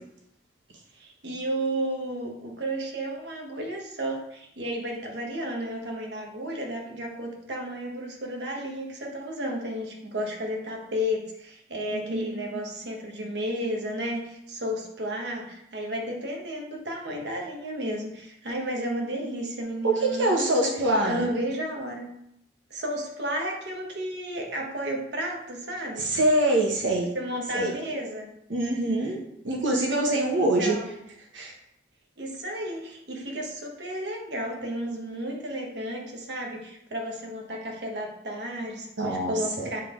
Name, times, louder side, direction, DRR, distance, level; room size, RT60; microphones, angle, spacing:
voice 1, 0.9-20.8 21.1-22.0 22.7-26.0 27.1-28.3 30.3-30.9 32.2-39.8, equal, 65° right, 0 dB, 1.2 m, -32 dB
voice 2, 11.9-12.6 19.8-21.3 26.0-27.1 27.5-27.7 28.5-29.2 29.4-30.8 31.3-31.5 39.0-39.7, right 1 dB, 85° right, 0 dB, 1.2 m, -25 dB
9.2 x 3.5 x 3.8 m, 0.77 s
head